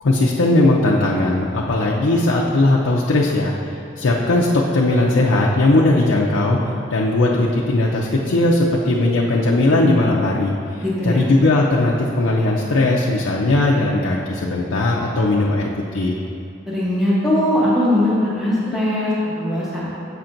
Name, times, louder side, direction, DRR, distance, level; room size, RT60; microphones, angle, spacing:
voice 1, 0.0-3.5 4.0-6.6 6.9-16.2, left 2 dB, 85° left, -3 dB, 0.5 m, -18 dB
voice 2, 10.8-11.2 16.7-19.9, left 1 dB, ahead, -9 dB, 1.0 m, -20 dB
8.1 x 5.7 x 2.6 m, 2.6 s
head